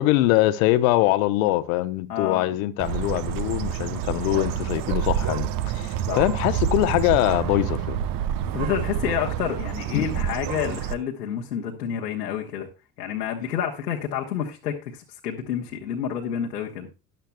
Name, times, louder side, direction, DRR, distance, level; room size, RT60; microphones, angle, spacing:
voice 1, 0.0-8.0 9.9-10.1, left 16 dB, 60° left, 0.9 m, -23 dB
voice 2, 2.1-2.5 6.0-6.3 8.5-12.7 13.0-16.9, left 8 dB, 80° left, 1.3 m, -29 dB
Bird, 2.8-10.9, right 10 dB, 45° right, 0.8 m, -28 dB
13.5 x 10.5 x 2.2 m
figure-of-eight pair, 60°, 48 cm